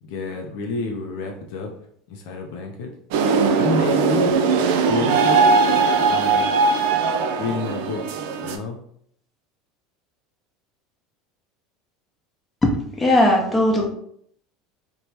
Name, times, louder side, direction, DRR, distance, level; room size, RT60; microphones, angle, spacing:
voice 1, 0.0-1.7 2.1-2.9 3.6-4.4 4.9-5.5 6.1-6.4 7.4-8.1 8.4-8.8, left 4 dB, 70° left, 2 dB, 0.4 m, -29 dB
sound 1, 3.1-8.6, right 4 dB, 70° right, 0.3 m, -19 dB
voice 2, 12.6-13.9, left 1 dB, 15° left, -1 dB, 0.8 m, -18 dB
2.8 x 2.2 x 2.9 m, 0.67 s
hypercardioid pair, 90°, 0 cm